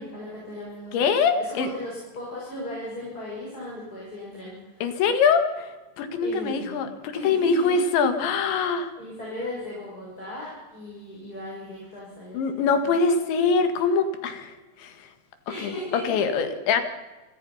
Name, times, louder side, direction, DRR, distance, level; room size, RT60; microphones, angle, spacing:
voice 1, 0.0-4.9 6.2-6.8 7.2-7.9 9.0-13.0 15.4-16.3, left 1 dB, 20° left, -5 dB, 6.8 m, -37 dB
voice 2, 0.9-1.7 4.8-5.7 6.0-8.9 12.3-14.5 14.8-14.9 15.6-15.7 16.1-16.8, left 5 dB, 75° left, 8 dB, 4.2 m, -23 dB
29.0 x 18.5 x 5.7 m, 1.2 s
omnidirectional pair, 5.2 m